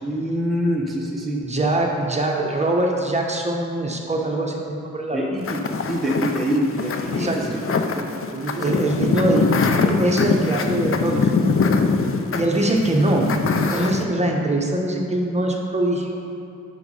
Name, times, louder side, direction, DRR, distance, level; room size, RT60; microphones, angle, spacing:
voice 1, 0.0-1.4 5.1-5.6 5.9-8.1 8.7-8.8 12.7-12.9, equal, ahead, -3 dB, 0.9 m, -25 dB
voice 2, 1.3-5.3 7.1-7.6 8.3-9.5 9.7-11.3 12.3-16.2, right 1 dB, 20° right, -1 dB, 1.0 m, -23 dB
sound 1, 5.4-14.0, left 4 dB, 45° left, 0.6 m, -23 dB
7.9 x 5.4 x 5.5 m, 2.7 s
wide cardioid pair, 95°, 30 cm